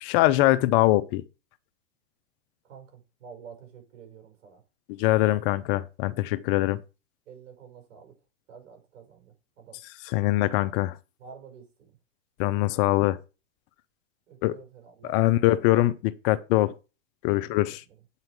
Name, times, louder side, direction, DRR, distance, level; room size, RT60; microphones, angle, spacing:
voice 1, 0.0-1.2 4.9-6.8 10.1-10.9 12.4-13.2 14.4-14.5 15.1-16.7 17.2-17.8, left 16 dB, 45° left, 0.8 m, -23 dB
voice 2, 2.6-4.6 7.3-8.1 8.5-9.8 11.2-12.0 14.3-15.6 17.3-18.0, right 6 dB, 75° right, 5.8 m, -49 dB
9.1 x 5.7 x 4.8 m
hypercardioid pair, 125°, 39 cm